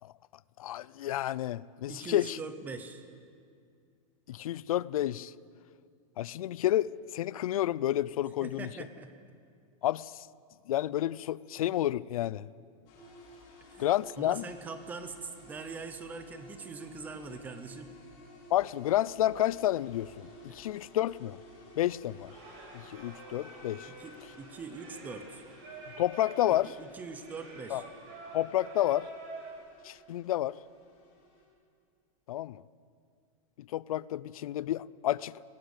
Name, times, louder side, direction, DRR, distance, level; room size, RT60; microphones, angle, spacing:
voice 1, 0.6-2.4 4.3-5.3 6.2-8.7 9.8-10.3 10.7-12.5 13.8-14.4 18.5-21.4 21.8-22.3 22.7-23.9 26.0-26.7 27.7-27.8 28.3-29.1 29.8-30.6 32.3-32.6 33.7-35.4, left 13 dB, 90° left, 21 dB, 0.5 m, -30 dB
voice 2, 1.9-3.0 8.4-9.1 13.6-13.8 14.2-17.9 20.5-20.6 23.9-25.4 26.6-27.8, right 4 dB, 10° right, 9 dB, 0.8 m, -43 dB
sound 1, 12.9-31.5, left 1 dB, 30° left, 5.0 m, -54 dB
Singing, 22.3-29.5, right 2 dB, 40° right, 6.3 m, -48 dB
19.5 x 17.0 x 8.2 m, 2.2 s
supercardioid pair, 180°, 18 cm